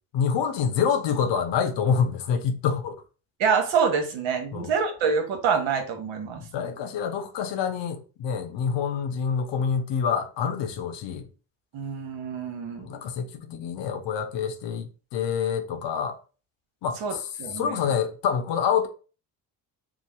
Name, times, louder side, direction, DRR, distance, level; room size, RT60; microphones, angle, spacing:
voice 1, 0.1-3.0 4.5-4.7 6.4-11.3 12.8-16.2 16.8-18.9, left 7 dB, 60° left, 0.7 m, -27 dB
voice 2, 3.4-6.5 11.7-12.9 17.0-17.8, right 6 dB, 65° right, 1.0 m, -26 dB
3.0 x 2.0 x 3.2 m
hypercardioid pair, 55°, 48 cm